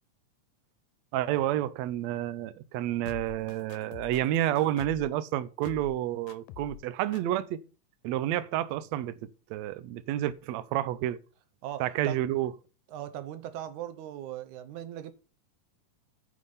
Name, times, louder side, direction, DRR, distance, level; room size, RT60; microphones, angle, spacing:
voice 1, 1.1-7.6 8.0-9.1 9.5-11.2 11.8-12.5, right 13 dB, 90° right, 1.5 m, -29 dB
sound 1, 3.1-5.1 5.6-6.0 6.3-6.8 7.1-7.2, left 13 dB, 85° left, 2.3 m, -45 dB
voice 2, 11.6-12.2 12.9-15.1, right 11 dB, 70° right, 2.1 m, -39 dB
9.6 x 5.6 x 5.5 m
omnidirectional pair, 3.9 m